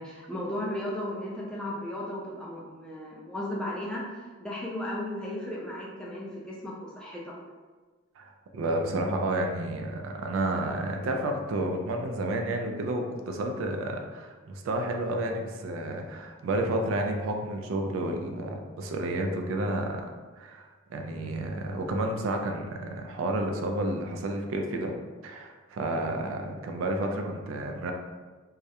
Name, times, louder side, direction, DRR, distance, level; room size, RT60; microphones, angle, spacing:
voice 1, 0.0-4.1 4.4-7.3, left 1 dB, 5° left, -5 dB, 0.3 m, -35 dB
voice 2, 8.2-20.0 20.4-24.9 25.2-27.9, right 1 dB, 75° right, 3 dB, 0.3 m, -31 dB
2.3 x 2.0 x 2.7 m, 1.3 s
head